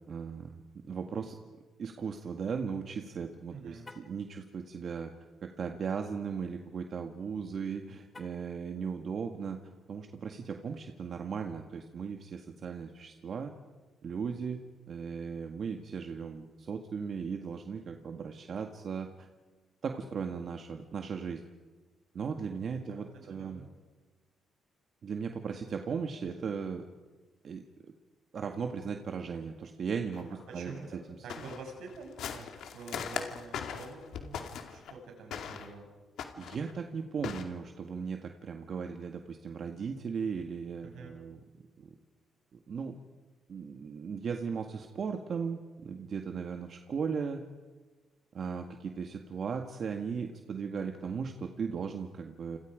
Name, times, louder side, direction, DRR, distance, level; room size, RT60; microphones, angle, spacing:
voice 1, 0.1-1.4 1.8-5.1 5.4-9.6 9.9-13.5 14.0-14.6 14.9-19.1 19.8-21.4 22.1-23.6 25.0-26.8 27.4-27.6 28.3-30.7 36.4-41.4 41.8-41.9 42.5-42.9 43.5-47.4 48.3-52.6, right 6 dB, 55° right, 4 dB, 1.8 m, -37 dB
voice 2, 3.5-3.9 22.9-23.7 30.3-32.5 32.7-35.9 40.8-41.1, right 3 dB, 80° right, 2 dB, 6.9 m, -47 dB
Car, 3.8-4.2 8.1-8.6, left 3 dB, 25° left, 2.3 m, -52 dB
sound 1, 30.1-30.2 30.7-30.8 31.3-34.9 35.3-35.7 36.2-36.7 37.2-37.4, left 7 dB, 75° left, 2.5 m, -39 dB
29.5 x 27.5 x 5.2 m, 1.3 s
cardioid pair, 90°, 0 cm